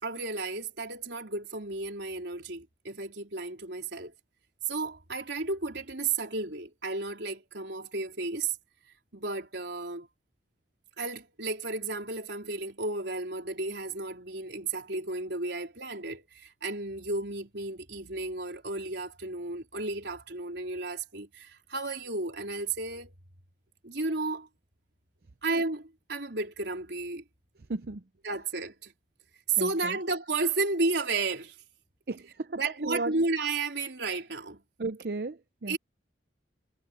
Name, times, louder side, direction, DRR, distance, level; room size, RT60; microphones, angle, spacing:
voice 1, 0.0-4.1 4.7-8.6 9.1-10.1 11.0-23.1 23.8-24.5 25.4-27.2 28.2-28.9 29.5-31.6 32.6-34.6 35.7-35.8, right 3 dB, 75° right, 3.9 m, -33 dB
voice 2, 27.7-28.0 29.6-30.0 32.1-32.6 32.8-33.1 34.8-35.8, right 3 dB, 60° right, 0.7 m, -34 dB
head